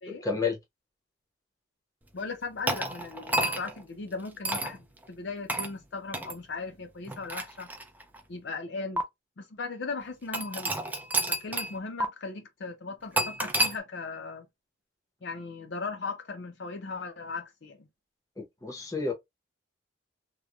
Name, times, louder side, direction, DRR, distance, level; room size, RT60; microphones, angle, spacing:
voice 1, 0.1-0.6 18.4-19.1, left 4 dB, 15° left, 0.7 m, -31 dB
voice 2, 2.1-7.7 8.3-9.0 9.4-10.8 11.3-14.5 15.2-17.9, left 4 dB, 60° left, 0.5 m, -38 dB
sound 1, 2.7-3.8 4.4-4.8 5.5-5.7 6.1-6.3 7.1-8.2 9.0-9.1 10.3-11.7 12.0-12.1 13.2-13.8, right 1 dB, 10° right, 0.3 m, -29 dB
2.9 x 2.1 x 2.3 m
head